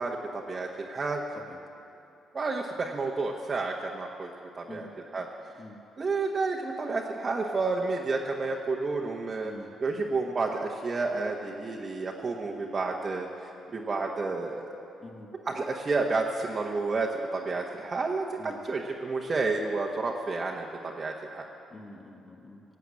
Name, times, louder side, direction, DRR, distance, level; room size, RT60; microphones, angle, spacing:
voice 1, 0.0-1.2 2.3-4.3 4.6-4.9 5.1-5.3 6.0-9.5 9.8-14.7 15.5-21.4, right 3 dB, 35° right, -1 dB, 1.2 m, -30 dB
voice 2, 9.4-9.7 15.0-15.3 18.4-18.7 21.7-22.6, left 2 dB, 30° left, 2 dB, 1.6 m, -46 dB
18.0 x 8.3 x 8.4 m, 2.8 s
cardioid pair, 90°, 0 cm